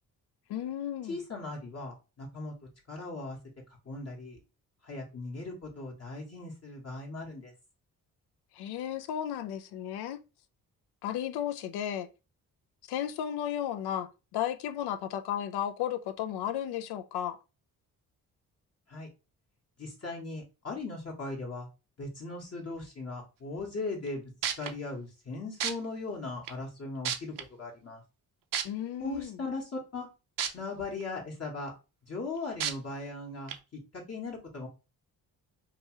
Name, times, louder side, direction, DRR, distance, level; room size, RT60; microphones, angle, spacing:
voice 1, 0.5-1.2 8.5-10.2 11.0-12.1 12.9-17.4 28.6-29.4, left 10 dB, 75° left, 0.5 m, -34 dB
voice 2, 1.0-2.5 2.9-3.4 3.8-4.4 4.8-7.5 18.9-19.1 19.8-21.7 22.0-24.2 24.6-28.0 29.0-30.1 30.5-31.7 32.1-34.7, left 3 dB, 40° left, 1.0 m, -38 dB
sound 1, 24.1-24.2 24.4-24.7 25.6-25.7 26.5-26.6 27.0-27.4 28.5-28.6 30.4-30.5 31.0-31.1 32.6-32.7 33.5-33.6, right 8 dB, 55° right, 0.6 m, -30 dB
2.9 x 2.3 x 2.9 m
supercardioid pair, 50°, 39 cm